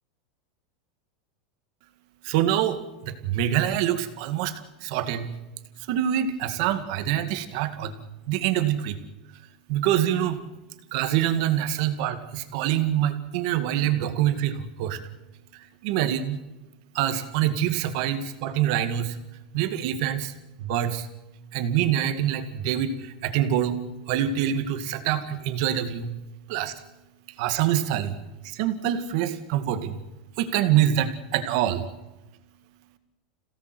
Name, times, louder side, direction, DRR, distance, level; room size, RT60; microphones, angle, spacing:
voice 1, 2.2-4.5 4.8-5.4 5.9-7.9 8.3-9.0 9.7-10.4 10.9-15.0 15.8-16.4 16.9-19.2 19.5-20.3 20.6-21.1 21.5-23.8 24.1-26.1 26.5-26.7 27.4-28.2 28.4-30.0 30.4-31.9, right 11 dB, 45° right, 9 dB, 1.9 m, -25 dB
27.0 x 17.0 x 7.8 m, 1.0 s
supercardioid pair, 175°, 4 cm